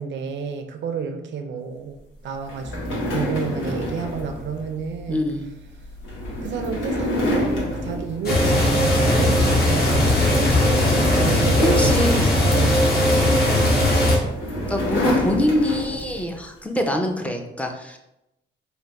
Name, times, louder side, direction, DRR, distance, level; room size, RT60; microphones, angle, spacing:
voice 1, 0.0-5.2 6.4-10.8 11.1-12.0 12.4-14.4, right 6 dB, 65° right, 6 dB, 0.6 m, -30 dB
sound 1, 2.4-9.0 9.4-9.6 10.1-13.1 13.9-16.3, left 1 dB, 85° left, 1.2 m, -28 dB
voice 2, 5.1-5.5 11.6-12.3 14.7-18.0, left 1 dB, 5° left, 3 dB, 0.5 m, -24 dB
sound 2, 8.2-14.2, left 1 dB, 50° left, 1.1 m, -18 dB
3.4 x 2.2 x 4.0 m, 0.87 s
cardioid pair, 90°, 20 cm